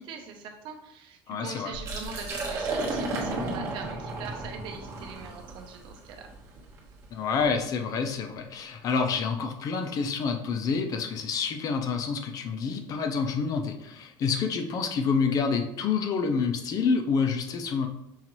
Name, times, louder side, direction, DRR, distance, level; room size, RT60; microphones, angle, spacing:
voice 1, 0.0-6.3, right 5 dB, 60° right, 3 dB, 0.7 m, -42 dB
voice 2, 1.3-1.7 7.1-17.9, left 5 dB, 40° left, 6 dB, 0.6 m, -28 dB
Liquid, 1.7-7.5, right 2 dB, 30° right, 1.2 m, -34 dB
5.6 x 2.5 x 3.0 m, 0.82 s
cardioid pair, 145°, 10 cm